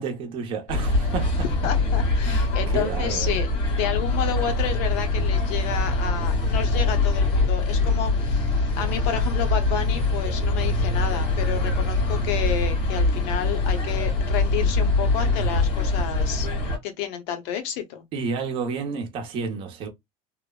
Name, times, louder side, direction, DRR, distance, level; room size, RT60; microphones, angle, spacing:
voice 1, 0.0-1.4 2.2-2.5 2.7-3.4 18.1-19.9, right 5 dB, 35° right, 0.7 m, -30 dB
sound 1, 0.7-16.8, left 2 dB, 90° left, 1.8 m, -23 dB
voice 2, 1.6-8.4 8.8-16.5 16.8-18.0, left 9 dB, 65° left, 0.8 m, -30 dB
3.1 x 2.0 x 2.2 m
cardioid pair, 170°, 15 cm